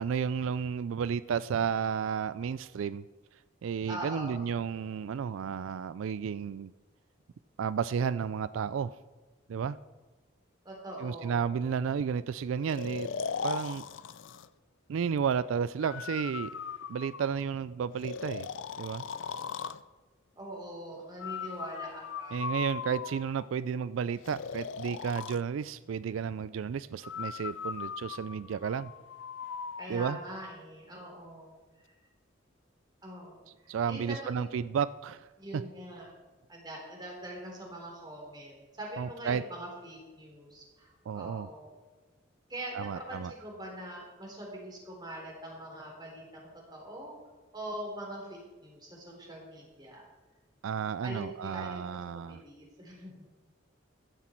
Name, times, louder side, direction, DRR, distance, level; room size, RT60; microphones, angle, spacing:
voice 1, 0.0-3.0 3.6-6.7 7.6-9.0 9.5-9.8 11.0-13.1 13.4-13.8 14.9-16.5 16.9-18.5 18.8-19.0 22.3-28.9 29.9-30.2 33.7-35.3 35.5-35.6 39.0-39.4 41.1-41.5 42.7-43.3 50.6-52.4, right 7 dB, 85° right, 16 dB, 0.3 m, -32 dB
voice 2, 3.9-4.5 10.6-11.6 20.4-22.4 29.8-31.6 31.8-31.9 33.0-34.5 35.4-36.1 36.5-41.7 42.5-47.1 47.5-50.0 51.0-51.7 52.1-53.2, right 1 dB, 20° right, -1 dB, 3.7 m, -43 dB
Breathing, 12.7-14.5 15.8-17.5 18.0-19.8 21.2-23.5 24.2-25.4 27.0-29.9, left 6 dB, 70° left, 0.5 m, -38 dB
15.0 x 11.0 x 4.5 m, 1.2 s
head